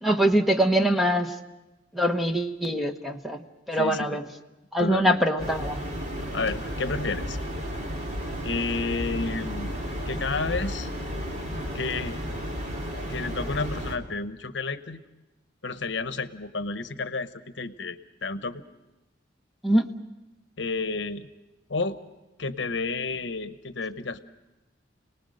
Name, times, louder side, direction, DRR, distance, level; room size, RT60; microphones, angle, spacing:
voice 1, 0.0-1.4 1.9-3.4 3.7-4.3 4.7-5.8 19.6-19.9, equal, ahead, 5 dB, 1.1 m, -23 dB
voice 2, 3.7-4.2 4.8-5.2 6.3-7.4 8.4-9.7 10.1-10.9 11.6-12.2 13.1-15.0 15.6-17.3 17.5-18.6 20.6-21.3 21.7-22.0 22.4-24.2, left 3 dB, 70° left, 12 dB, 0.9 m, -31 dB
sound 1, 5.4-14.0, equal, 40° right, 2.9 m, -33 dB
30.0 x 19.5 x 6.5 m, 1.0 s
head